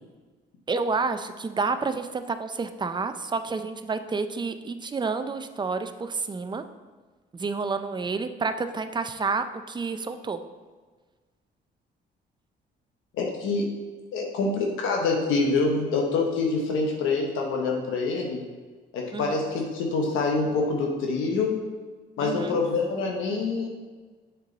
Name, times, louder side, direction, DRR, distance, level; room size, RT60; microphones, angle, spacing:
voice 1, 0.7-6.6 7.3-10.4 19.1-19.4 22.2-22.6, right 4 dB, 25° right, 9 dB, 0.4 m, -29 dB
voice 2, 13.1-13.7 14.1-18.4 18.9-21.6 22.2-23.7, left 3 dB, 90° left, 0 dB, 1.0 m, -26 dB
6.6 x 4.6 x 3.9 m, 1.4 s
cardioid pair, 90°, 20 cm